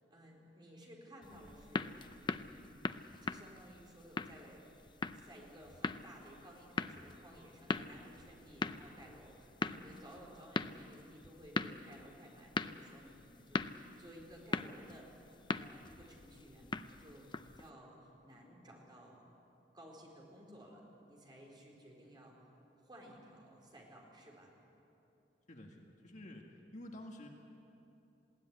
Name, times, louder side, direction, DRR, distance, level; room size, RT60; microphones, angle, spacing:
voice 1, 0.0-2.8 3.2-4.6 5.1-15.2 15.5-19.2 19.7-22.4 22.8-24.5, equal, 25° right, -2 dB, 4.2 m, -56 dB
sound 1, 1.2-17.7, left 3 dB, 25° left, 0.5 m, -42 dB
voice 2, 25.5-26.5 26.7-27.3, left 1 dB, 40° left, 1 dB, 1.8 m, -50 dB
20.5 x 16.5 x 9.6 m, 2.9 s
head